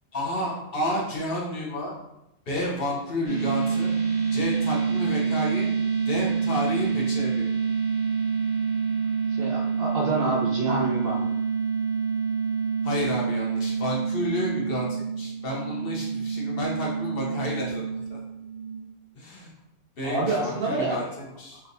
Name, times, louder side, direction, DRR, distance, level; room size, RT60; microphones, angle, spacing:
voice 1, 0.1-1.9 2.5-3.9 4.3-5.7 6.1-7.5 12.8-18.2 19.1-19.5 20.0-21.6, left 1 dB, 50° left, -3 dB, 1.0 m, -31 dB
sound 1, 3.2-18.8, right 6 dB, 40° right, 1.2 m, -27 dB
voice 2, 9.3-11.2 20.0-21.0, right 2 dB, 55° right, -2 dB, 0.9 m, -27 dB
4.3 x 3.5 x 2.6 m, 0.86 s
omnidirectional pair, 1.3 m